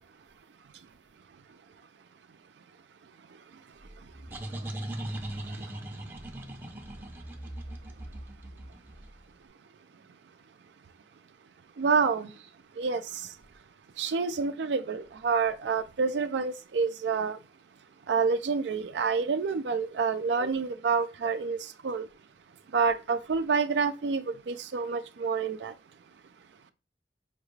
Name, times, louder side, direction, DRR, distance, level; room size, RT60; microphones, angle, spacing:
voice 1, 3.3-3.6 4.0-4.1 4.6-4.9 5.2-5.7 11.8-13.4 14.0-17.4 18.1-22.1 22.7-25.8, right 5 dB, 85° right, 0.4 m, -29 dB
sound 1, 3.8-9.3, right 1 dB, 10° right, 0.5 m, -39 dB
5.2 x 2.4 x 3.1 m
head